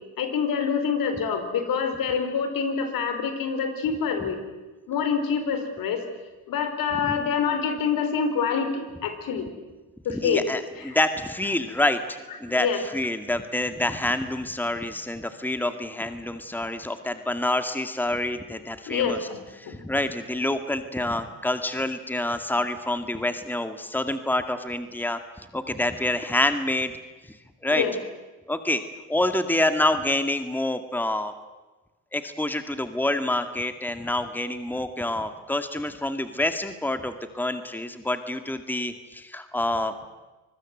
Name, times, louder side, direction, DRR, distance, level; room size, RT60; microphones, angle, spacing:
voice 1, 0.2-4.4 4.9-6.0 6.5-9.5 10.0-10.4 10.8-11.0 12.5-12.8 18.9-19.9 27.7-27.9, left 6 dB, 65° left, 8 dB, 4.3 m, -26 dB
voice 2, 10.1-19.2 19.6-25.2 25.5-26.9 27.6-27.8 28.5-28.8 29.1-31.3 32.1-39.9, left 1 dB, 5° left, 9 dB, 2.1 m, -27 dB
25.5 x 21.0 x 7.8 m, 1.2 s
supercardioid pair, 65°, 36 cm